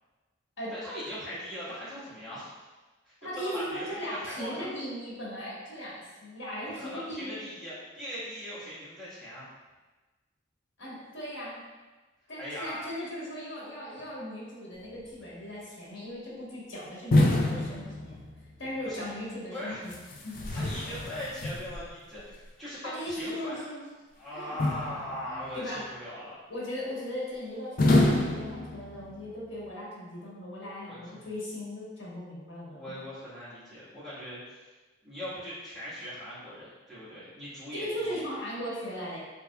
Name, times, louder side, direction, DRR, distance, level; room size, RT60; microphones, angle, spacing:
voice 1, 0.7-2.7 3.0-4.7 6.8-9.4 12.4-12.8 18.8-19.0 19.5-19.8 20.5-23.6 24.2-26.4 30.9-31.3 32.7-34.6 35.0-38.2, equal, ahead, -14 dB, 1.3 m, -40 dB
voice 2, 3.2-7.5 10.8-11.6 12.3-18.2 18.6-19.9 20.2-20.4 22.8-23.9 24.3-24.6 25.3-26.0 26.5-32.9 37.7-39.2, equal, 85° left, -6 dB, 1.2 m, -38 dB
sound 1, 17.1-18.6 19.9-21.9 24.6-25.4 27.8-29.2, left 2 dB, 45° left, 0.4 m, -27 dB
3.4 x 3.3 x 2.2 m, 1.2 s
head